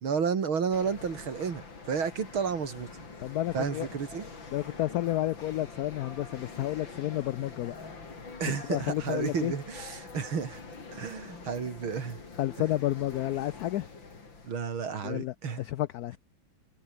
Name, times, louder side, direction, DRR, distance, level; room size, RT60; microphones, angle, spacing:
voice 1, 0.0-3.0 3.5-4.3 8.4-10.6 10.9-12.2 14.5-15.6, right 6 dB, 85° right, 3.3 m, -32 dB
sound 1, 0.7-14.5, left 4 dB, 70° left, 4.7 m, -45 dB
voice 2, 3.2-3.9 4.5-7.8 8.7-9.5 12.4-13.9 15.0-16.2, left 14 dB, 90° left, 0.8 m, -31 dB
omnidirectional pair, 2.2 m